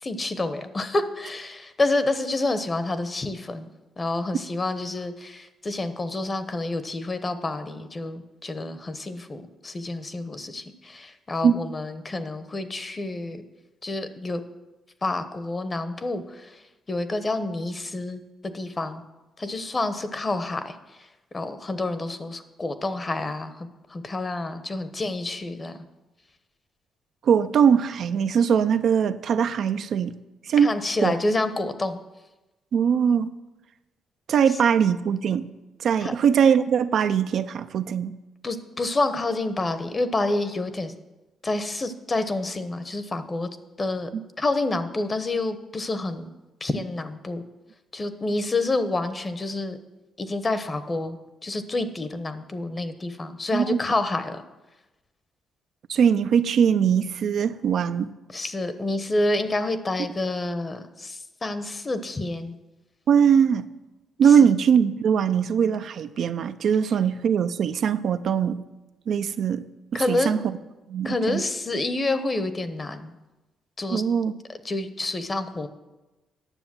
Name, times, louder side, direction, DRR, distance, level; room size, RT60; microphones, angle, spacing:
voice 1, 0.0-3.7 4.0-13.4 13.8-14.4 15.0-16.6 16.9-19.0 19.4-21.1 21.3-25.8 30.6-32.0 36.0-36.1 38.4-40.9 41.4-43.5 43.8-44.1 44.4-46.3 46.6-47.4 47.9-49.8 50.2-54.4 58.3-62.6 64.2-64.5 69.9-70.4 71.0-73.1 73.8-74.0 74.5-75.7, left 2 dB, 30° left, 11 dB, 0.9 m, -28 dB
voice 2, 27.2-30.1 30.5-30.7 31.0-31.1 32.7-33.3 34.3-35.5 35.8-38.2 44.1-44.2 53.5-53.8 55.9-58.1 63.1-63.7 64.2-68.6 69.1-69.6 69.9-70.4 70.9-71.4 73.9-74.3, right 7 dB, 65° right, 10 dB, 0.5 m, -21 dB
9.8 x 7.0 x 7.5 m, 1.1 s
cardioid pair, 90°, 0 cm